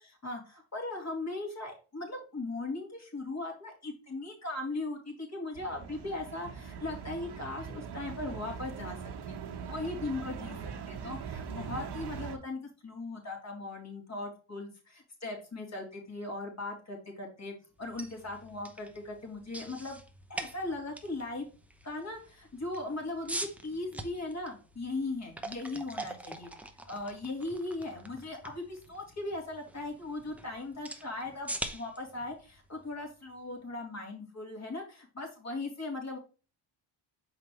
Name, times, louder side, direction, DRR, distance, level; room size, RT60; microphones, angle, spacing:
voice 1, 0.0-9.4 9.7-17.5 17.8-20.0 20.3-21.4 21.8-26.5 26.9-36.2, left 2 dB, 35° left, 1 dB, 3.1 m, -38 dB
sound 1, 5.5-12.4, right 6 dB, 55° right, 1.5 m, -41 dB
sound 2, 17.8-33.7, right 1 dB, 5° right, 0.8 m, -44 dB
6.8 x 4.9 x 3.0 m, 0.35 s
cardioid pair, 85°, 49 cm